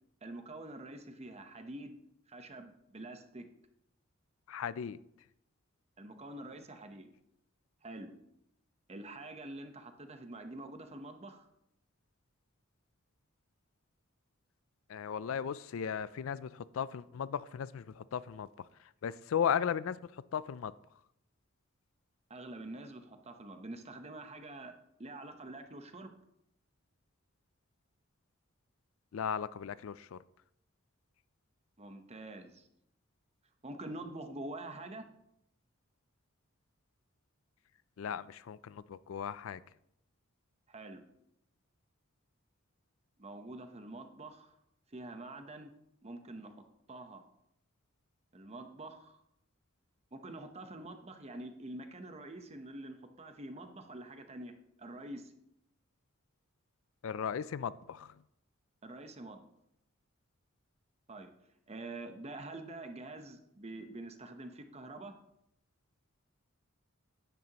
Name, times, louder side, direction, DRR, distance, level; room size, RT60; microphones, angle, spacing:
voice 1, 0.2-2.0 2.3-3.5 6.0-7.1 7.8-8.1 8.9-11.5 22.3-26.1 31.8-32.7 33.6-35.1 40.7-41.0 43.2-44.6 44.9-45.7 46.0-47.2 48.3-49.2 50.1-54.5 54.8-55.3 58.8-59.5 61.1-61.3 61.7-65.1, right 2 dB, 30° right, 7 dB, 0.9 m, -46 dB
voice 2, 4.5-5.0 14.9-18.5 19.0-20.0 20.3-20.7 29.1-30.2 38.0-39.6 57.0-58.1, left 8 dB, 75° left, 17 dB, 0.4 m, -36 dB
10.5 x 9.4 x 3.0 m, 0.78 s
head